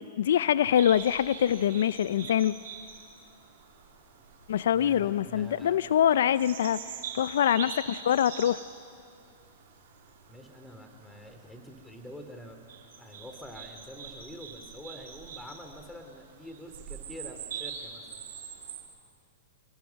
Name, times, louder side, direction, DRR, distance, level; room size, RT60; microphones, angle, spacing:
voice 1, 0.0-2.5 4.5-6.8 7.1-8.6, left 10 dB, 75° left, 17 dB, 0.4 m, -24 dB
sound 1, 0.8-18.8, right 7 dB, 70° right, 5.7 m, -44 dB
voice 2, 4.7-5.8 10.3-12.6 13.0-18.2, equal, 5° left, 5 dB, 2.7 m, -46 dB
26.0 x 21.5 x 5.8 m, 2.3 s
hypercardioid pair, 125°, 0 cm